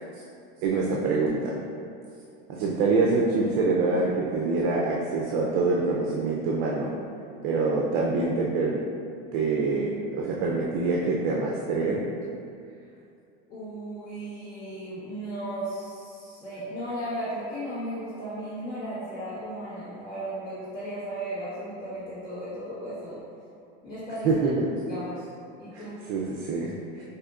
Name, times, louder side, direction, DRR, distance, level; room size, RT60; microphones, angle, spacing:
voice 1, 0.6-1.6 2.5-6.9 7.4-8.8 9.3-12.0 24.2-24.7 25.7-25.8 26.1-27.1, right 3 dB, 60° right, -3 dB, 0.5 m, -25 dB
voice 2, 13.5-23.2 23.8-24.3 24.9-25.3 25.6-26.0, right 1 dB, 35° left, -14 dB, 1.2 m, -35 dB
4.8 x 2.6 x 2.4 m, 2.5 s
supercardioid pair, 155°, 29 cm